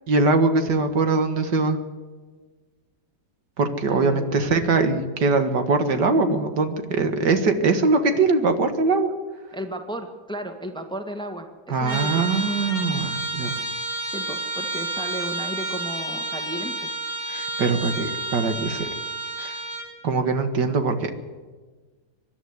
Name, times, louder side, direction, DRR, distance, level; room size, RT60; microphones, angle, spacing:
voice 1, 0.1-1.8 3.6-9.1 11.7-13.6 17.3-18.9 19.4-19.6 20.0-21.1, right 3 dB, 75° right, 8 dB, 2.3 m, -22 dB
voice 2, 3.9-4.6 9.5-12.3 14.1-16.9, right 1 dB, 5° left, 6 dB, 1.6 m, -34 dB
Trumpet, 11.8-19.9, right 2 dB, 55° right, 7.3 m, -30 dB
24.5 x 11.5 x 9.6 m, 1.4 s
omnidirectional pair, 1.9 m